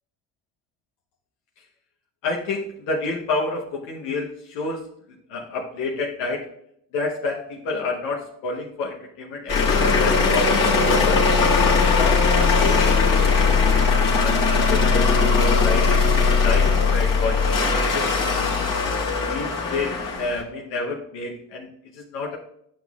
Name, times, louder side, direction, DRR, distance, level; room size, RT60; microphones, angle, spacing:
voice 1, 2.2-4.9 5.3-6.5 6.9-11.2 11.6-18.1 19.1-22.4, left 3 dB, 85° left, -2 dB, 1.0 m, -30 dB
sound 1, 9.5-20.4, left 4 dB, 45° left, 1.7 m, -19 dB
10.0 x 6.2 x 2.4 m, 0.74 s
hypercardioid pair, 55°, 46 cm